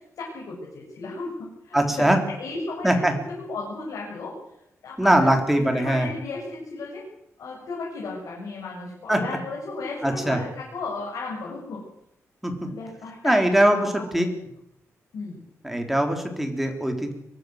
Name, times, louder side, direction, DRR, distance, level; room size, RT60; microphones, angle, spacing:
voice 1, 0.2-3.0 3.4-4.3 4.8-7.0 7.4-11.8 12.6-13.9 14.2-14.3 15.1-15.4, left 3 dB, 75° left, -3 dB, 7.1 m, -35 dB
voice 2, 1.7-2.2 2.8-3.2 5.0-6.1 9.1-9.2 10.0-10.4 12.4-12.7 13.2-14.3 15.6-17.1, right 1 dB, 5° right, 4 dB, 3.6 m, -21 dB
23.5 x 17.0 x 8.0 m, 0.78 s
wide cardioid pair, 170°, 6 cm